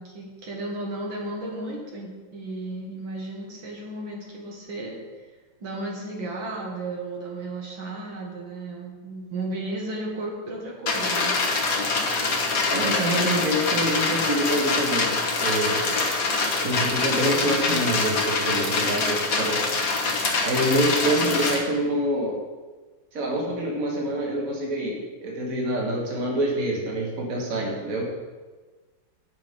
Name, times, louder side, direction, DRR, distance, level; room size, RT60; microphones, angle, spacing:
voice 1, 0.0-5.0 5.6-11.3, right 2 dB, 70° right, -2 dB, 2.2 m, -34 dB
sound 1, 10.9-21.6, left 3 dB, 50° left, 1.5 m, -25 dB
voice 2, 12.7-15.8 16.6-19.6 20.4-22.3 23.1-25.0 25.2-28.0, right 1 dB, 45° right, -2 dB, 1.9 m, -26 dB
8.1 x 6.7 x 5.2 m, 1.3 s
omnidirectional pair, 2.2 m